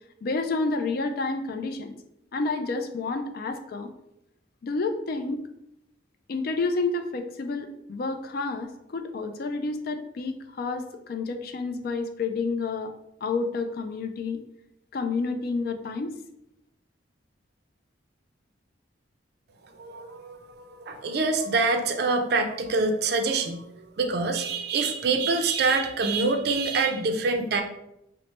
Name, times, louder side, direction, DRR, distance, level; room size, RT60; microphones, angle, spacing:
voice 1, 0.2-1.9 2.3-3.9 4.6-5.4 6.3-12.9 13.2-14.4 14.9-16.1, left 3 dB, 50° left, 7 dB, 0.3 m, -29 dB
voice 2, 19.8-27.6, right 3 dB, 55° right, 6 dB, 0.4 m, -25 dB
3.1 x 2.0 x 4.1 m, 0.82 s
head